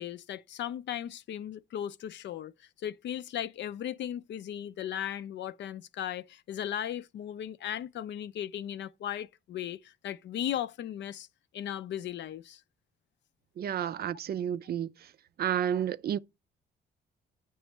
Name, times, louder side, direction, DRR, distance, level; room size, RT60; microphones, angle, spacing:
voice 1, 0.0-2.5 2.8-11.3 11.5-12.6, left 10 dB, 65° left, 0.5 m, -36 dB
voice 2, 13.6-14.9 15.4-16.2, right 9 dB, 50° right, 0.4 m, -30 dB
8.8 x 3.1 x 4.5 m
cardioid pair, 90°, 20 cm